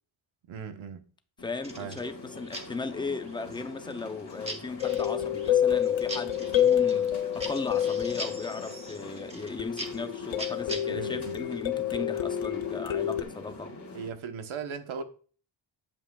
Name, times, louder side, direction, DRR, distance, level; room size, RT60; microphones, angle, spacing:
voice 1, 0.5-1.0 1.8-2.0 10.9-11.4 13.9-15.0, right 6 dB, 85° right, 1.1 m, -37 dB
sound 1, 1.4-14.1, left 2 dB, 35° left, 2.2 m, -44 dB
voice 2, 1.4-13.7, left 3 dB, 10° left, 0.4 m, -37 dB
sound 2, 1.6-11.2, right 1 dB, 15° right, 1.1 m, -43 dB
sound 3, 4.8-9.1 9.6-13.2, left 10 dB, 70° left, 0.7 m, -28 dB
8.9 x 7.4 x 2.3 m
wide cardioid pair, 150°, 47 cm